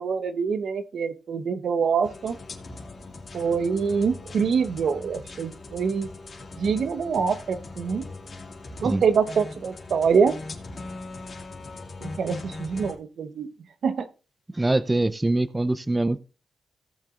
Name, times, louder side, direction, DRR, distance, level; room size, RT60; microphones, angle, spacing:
voice 1, 0.0-2.4 3.3-6.1 6.6-8.1 8.8-10.4 12.0-13.5 13.8-14.1, right 6 dB, 70° right, 1.0 m, -25 dB
sound 1, 2.0-13.0, left 3 dB, 50° left, 2.5 m, -40 dB
voice 2, 14.5-16.2, right 2 dB, 15° right, 0.6 m, -23 dB
17.0 x 7.3 x 2.5 m
cardioid pair, 75°, 0 cm